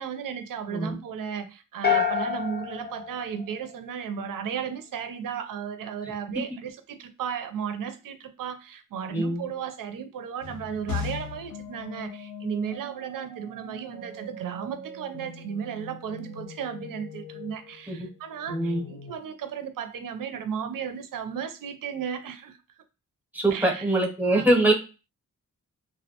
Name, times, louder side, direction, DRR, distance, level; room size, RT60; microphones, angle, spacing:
voice 1, 0.0-22.6 23.5-23.9 24.3-24.7, right 7 dB, 80° right, 0.5 m, -35 dB
sound 1, 1.8-4.1, left 7 dB, 30° left, 0.6 m, -28 dB
voice 2, 9.1-9.5 17.9-18.1 18.5-18.9 23.3-24.7, right 1 dB, 5° right, 0.7 m, -23 dB
sound 2, 10.4-19.2, left 4 dB, 85° left, 0.9 m, -40 dB
2.3 x 2.1 x 2.7 m
wide cardioid pair, 100°, 33 cm